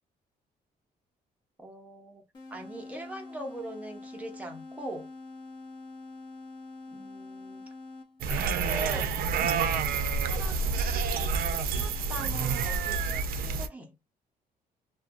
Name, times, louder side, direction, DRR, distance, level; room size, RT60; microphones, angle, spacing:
voice 1, 1.6-5.1 6.9-7.7 8.3-9.2 10.2-13.0 13.3-13.9, right 1 dB, 10° right, 0.7 m, -42 dB
sound 1, 2.3-8.4, left 3 dB, 30° left, 0.8 m, -45 dB
sound 2, 8.2-13.7, right 5 dB, 65° right, 0.4 m, -28 dB
2.5 x 2.2 x 2.4 m
cardioid pair, 175°, 16 cm